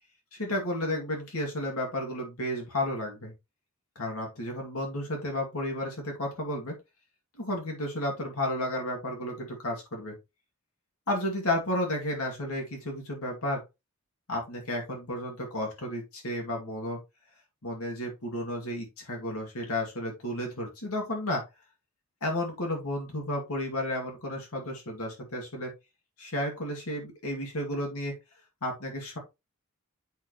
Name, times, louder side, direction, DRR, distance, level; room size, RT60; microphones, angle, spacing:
voice 1, 0.3-3.3 4.0-6.8 7.4-10.2 11.1-13.6 14.3-17.0 17.6-21.4 22.2-25.7 26.2-28.1 28.6-29.2, left 1 dB, 75° left, 0 dB, 2.4 m, -32 dB
8.1 x 6.0 x 3.1 m, 0.24 s
head